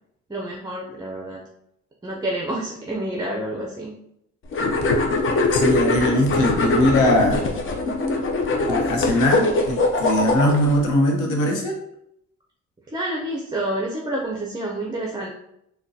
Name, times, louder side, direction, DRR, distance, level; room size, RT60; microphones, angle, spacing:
voice 1, 0.3-1.4 2.0-3.9 12.9-15.3, right 1 dB, 15° right, -1 dB, 0.5 m, -28 dB
sound 1, 4.5-10.8, left 2 dB, 45° left, 0.6 m, -22 dB
voice 2, 5.5-7.4 8.7-11.8, left 1 dB, 80° left, 0 dB, 0.9 m, -20 dB
3.7 x 2.2 x 2.7 m, 0.76 s
cardioid pair, 90°, 30 cm